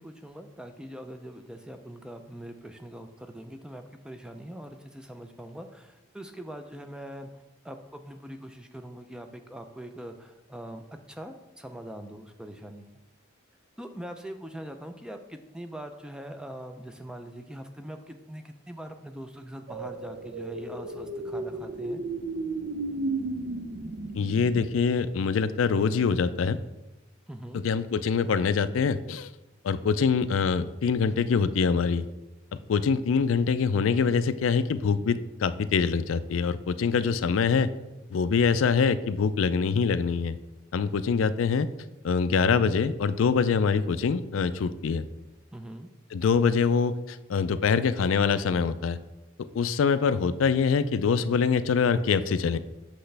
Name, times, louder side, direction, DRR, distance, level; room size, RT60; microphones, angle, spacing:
voice 1, 0.0-7.3 7.6-10.8 11.1-12.8 13.8-22.0 27.3-27.6 45.5-45.9, right 1 dB, 5° right, 6 dB, 0.4 m, -42 dB
sound 1, 19.7-24.7, right 2 dB, 55° right, 0.6 m, -34 dB
voice 2, 24.2-26.6 27.5-29.3 29.6-32.0 32.7-37.7 38.1-40.4 40.7-41.7 42.0-45.1 46.1-49.0 49.5-52.6, left 5 dB, 90° left, 13 dB, 0.4 m, -24 dB
7.9 x 6.4 x 3.3 m, 1.0 s
head